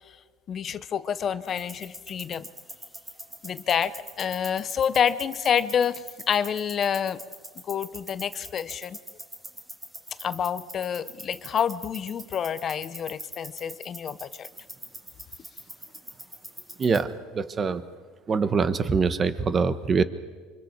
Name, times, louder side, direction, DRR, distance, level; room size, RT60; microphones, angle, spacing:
voice 1, 0.5-2.5 3.4-7.2 7.7-9.0 10.2-14.5, left 8 dB, 30° left, 14 dB, 0.8 m, -28 dB
sound 1, 1.5-17.0, equal, 10° right, 2.6 m, -44 dB
voice 2, 16.8-17.8 18.3-20.0, right 5 dB, 25° right, 12 dB, 1.1 m, -24 dB
28.5 x 25.0 x 4.6 m, 1.5 s
cardioid pair, 145°, 0 cm